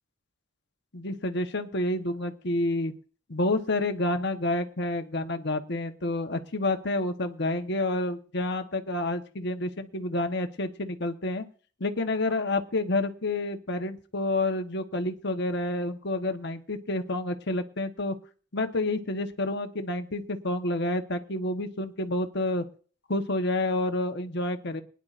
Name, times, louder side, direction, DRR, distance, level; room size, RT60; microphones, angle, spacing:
voice 1, 0.9-2.9 3.3-11.4 11.8-18.1 18.5-22.6 23.1-24.8, left 2 dB, 55° left, 6 dB, 1.1 m, -29 dB
23.0 x 10.5 x 2.5 m, 0.41 s
head